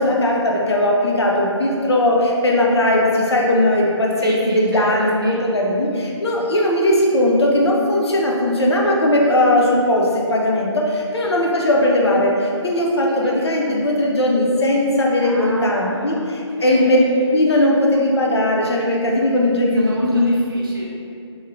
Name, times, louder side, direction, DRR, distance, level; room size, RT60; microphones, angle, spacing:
voice 1, 0.0-17.0 17.3-20.3, left 1 dB, 60° left, -2 dB, 0.5 m, -18 dB
voice 2, 4.2-5.4 13.1-13.4 15.2-16.3 16.6-17.3 19.9-20.9, equal, 45° right, -4 dB, 0.5 m, -34 dB
3.0 x 2.0 x 2.5 m, 2.5 s
hypercardioid pair, 175°, 15 cm